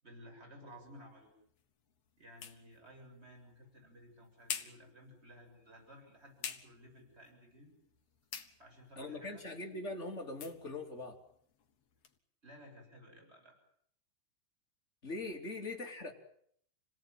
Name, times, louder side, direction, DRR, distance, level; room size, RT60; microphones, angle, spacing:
voice 1, 0.0-1.3 2.2-7.7 8.6-9.4 12.4-13.6, equal, 20° right, 3 dB, 7.4 m, -56 dB
sound 1, 0.7-12.2, left 8 dB, 55° left, 2.7 m, -50 dB
voice 2, 9.0-11.2 15.0-16.1, left 2 dB, 20° left, 2 dB, 3.2 m, -41 dB
28.5 x 18.0 x 9.2 m, 0.68 s
omnidirectional pair, 3.6 m